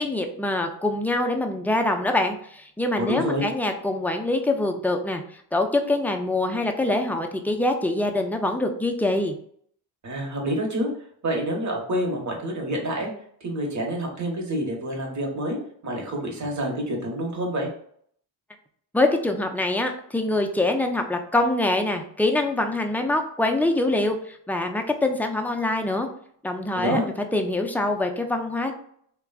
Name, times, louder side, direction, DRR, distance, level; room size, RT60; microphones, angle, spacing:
voice 1, 0.0-5.2 5.5-9.4 18.9-26.1 26.4-27.0 27.3-28.7, left 2 dB, 5° left, 3 dB, 0.3 m, -24 dB
voice 2, 3.0-3.5 10.0-10.9 11.2-13.1 13.4-15.6 15.8-17.7 26.7-27.0, right 1 dB, 40° right, 0 dB, 1.2 m, -27 dB
3.3 x 2.3 x 2.3 m, 0.63 s
cardioid pair, 70°, 47 cm